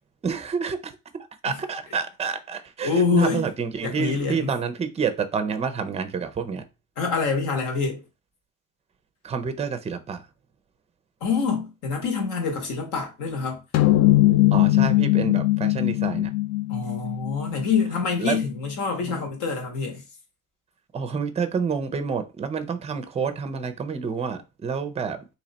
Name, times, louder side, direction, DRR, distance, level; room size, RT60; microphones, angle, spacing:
voice 1, 0.2-0.9 1.4-6.6 9.2-10.3 14.5-16.3 18.2-18.4 19.0-19.2 20.9-25.3, right 6 dB, 20° right, 0.5 m, -28 dB
voice 2, 2.8-3.4 3.8-4.5 7.0-8.0 11.2-13.6 16.7-20.0, left 5 dB, 70° left, 1.5 m, -26 dB
sound 1, 13.7-18.4, left 16 dB, 50° left, 0.5 m, -20 dB
3.1 x 2.9 x 4.0 m
cardioid pair, 145°, 32 cm